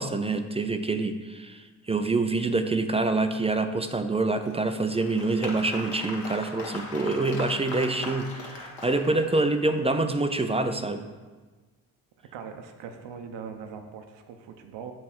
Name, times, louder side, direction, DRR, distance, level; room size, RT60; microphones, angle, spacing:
voice 1, 0.0-11.0, right 3 dB, 15° right, 7 dB, 0.4 m, -26 dB
Applause, 4.4-9.7, left 2 dB, 55° left, 1.3 m, -39 dB
voice 2, 12.3-14.9, right 6 dB, 60° right, 6 dB, 0.9 m, -41 dB
7.3 x 3.1 x 5.8 m, 1.3 s
hypercardioid pair, 45°, 49 cm